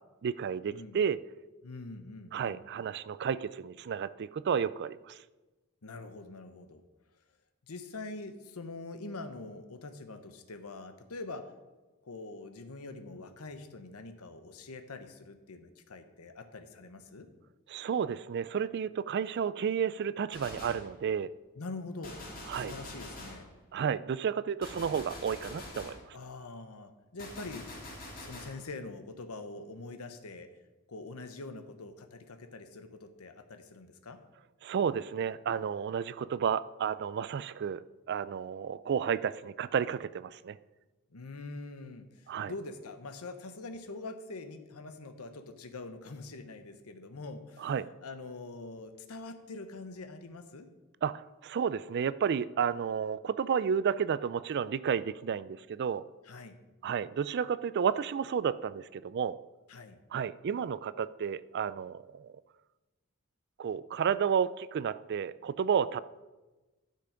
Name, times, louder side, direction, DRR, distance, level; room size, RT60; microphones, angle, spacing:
voice 1, 0.2-1.2 2.3-5.2 17.7-21.3 22.5-22.7 23.7-26.2 34.6-40.6 42.3-42.5 47.6-47.9 51.0-56.0 56.8-59.4 60.1-62.3 63.6-66.0, right 7 dB, 50° right, 17 dB, 0.3 m, -32 dB
voice 2, 1.6-2.6 5.8-6.8 7.7-11.5 12.0-17.3 21.6-22.2 22.6-23.5 26.1-27.7 28.2-30.5 30.9-34.2 41.1-50.7 56.2-56.6 59.7-60.0, left 3 dB, 85° left, 8 dB, 0.9 m, -44 dB
Gunshot gunfire, 20.3-20.9 22.0-23.5 24.6-26.0 27.2-28.6, left 1 dB, 40° left, 2.2 m, -45 dB
12.0 x 5.7 x 5.1 m, 1.1 s
head